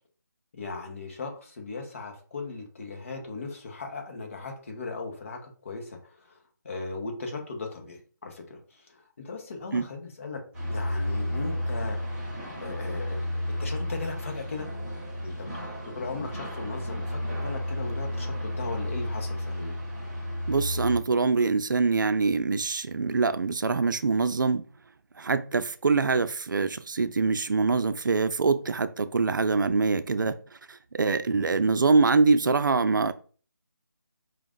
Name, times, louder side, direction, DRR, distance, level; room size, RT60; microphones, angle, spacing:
voice 1, 0.5-6.4 6.6-8.6 8.9-10.4 10.7-12.0 12.6-14.7 15.2-15.5 15.8-19.7 26.0-26.1, left 3 dB, 40° left, 1.1 m, -37 dB
sound 1, 10.5-21.0, left 1 dB, 5° right, 0.9 m, -32 dB
voice 2, 20.5-24.7 25.2-30.3 30.7-33.1, right 4 dB, 75° right, 0.5 m, -24 dB
5.0 x 2.5 x 3.8 m
figure-of-eight pair, 165°, 11 cm